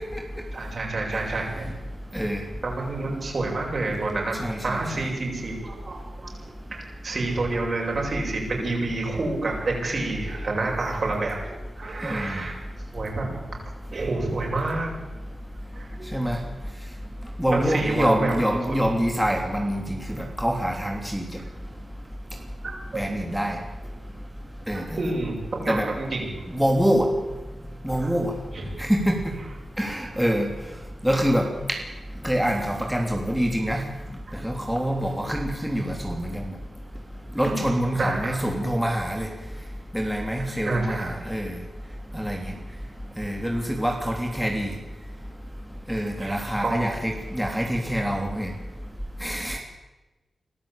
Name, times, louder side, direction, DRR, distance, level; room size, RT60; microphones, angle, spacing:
voice 1, 0.5-1.7 2.6-4.4 4.6-6.3 6.7-12.5 12.9-13.3 13.9-14.9 15.7-16.1 17.4-18.3 21.4-21.5 22.6-23.1 24.7-26.3 27.9-28.1 28.5-28.7 37.5-37.7 38.0-38.4 40.6-41.2 46.2-47.1, right 2 dB, 55° right, 0 dB, 7.8 m, -29 dB
voice 2, 4.4-4.8 12.0-12.4 16.1-16.4 17.4-21.2 22.9-23.6 24.7-25.1 25.7-25.9 26.5-27.1 27.8-28.3 28.8-29.3 29.8-30.5 31.0-31.5 32.2-33.8 34.4-36.4 37.4-39.3 39.9-41.5 42.1-42.5 43.2-44.7 45.9-48.5 49.2-49.6, equal, 5° right, 1 dB, 3.3 m, -25 dB
24.0 x 13.5 x 8.8 m, 1.1 s
cardioid pair, 65°, 0 cm